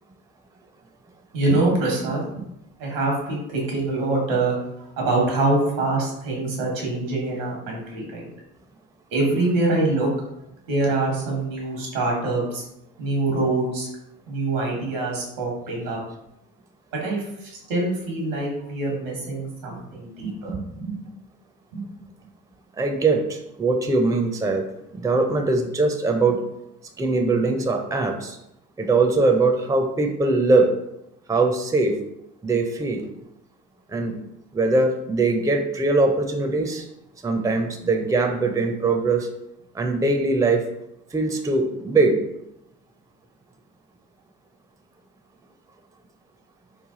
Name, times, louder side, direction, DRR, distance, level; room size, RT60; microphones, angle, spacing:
voice 1, 1.3-2.2 2.8-4.5 5.0-8.2 9.1-10.1 10.7-12.6 13.0-13.9 14.3-16.0 16.9-21.0 21.7-21.8, right 2 dB, 85° right, -2 dB, 1.3 m, -24 dB
voice 2, 22.8-24.7 24.9-26.4 27.0-28.4 28.8-30.7 31.3-31.9 32.4-33.0 33.9-34.1 34.5-36.9 37.2-39.3 39.7-40.6 41.1-42.2, right 3 dB, 10° right, 4 dB, 0.5 m, -21 dB
3.3 x 2.3 x 3.7 m, 0.84 s
hypercardioid pair, 60°, 38 cm